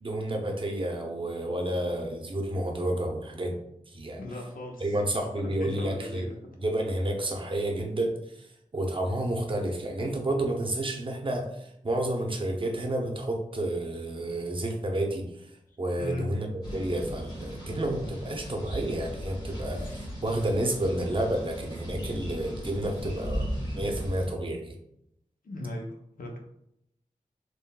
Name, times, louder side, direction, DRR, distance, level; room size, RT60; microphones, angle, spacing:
voice 1, 0.0-3.6 3.9-4.2 4.8-6.2 6.6-8.5 8.7-15.5 15.8-23.5 23.7-24.7, right 1 dB, 35° right, 2 dB, 0.6 m, -30 dB
voice 2, 4.2-5.0 5.6-6.4 16.0-16.3 25.4-26.4, left 1 dB, 80° left, 0 dB, 0.6 m, -37 dB
sound 1, 16.6-24.3, equal, 30° left, 1.3 m, -37 dB
3.6 x 2.1 x 2.3 m, 0.77 s
wide cardioid pair, 50°, 14 cm